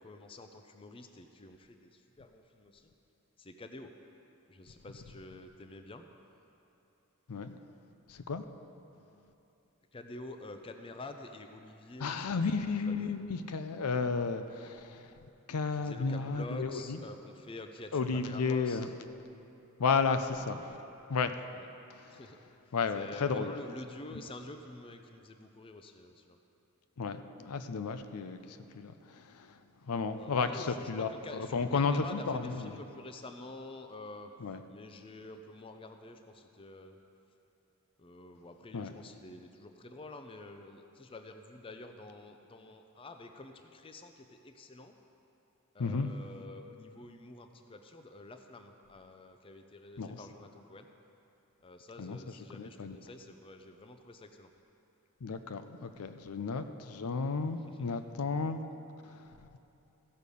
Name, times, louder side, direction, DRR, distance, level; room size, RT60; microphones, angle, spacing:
voice 1, 0.0-2.9 3.4-3.9 4.5-6.0 9.9-13.2 15.7-18.9 21.5-21.7 22.1-26.4 30.2-34.3 34.7-37.0 38.0-45.0 45.7-50.9 51.6-54.5, left 2 dB, 25° left, 6 dB, 0.5 m, -48 dB
voice 2, 8.1-8.4 12.0-15.1 15.5-17.0 17.9-18.9 19.8-20.8 21.1-21.3 21.9-22.2 22.7-23.5 27.0-29.6 29.8-32.8 34.4-34.6 38.7-38.9 45.8-46.1 50.0-50.2 52.0-52.2 52.5-53.0 55.2-58.6 59.0-59.2, left 4 dB, 80° left, 9 dB, 0.5 m, -33 dB
15.0 x 6.6 x 5.3 m, 3.0 s
head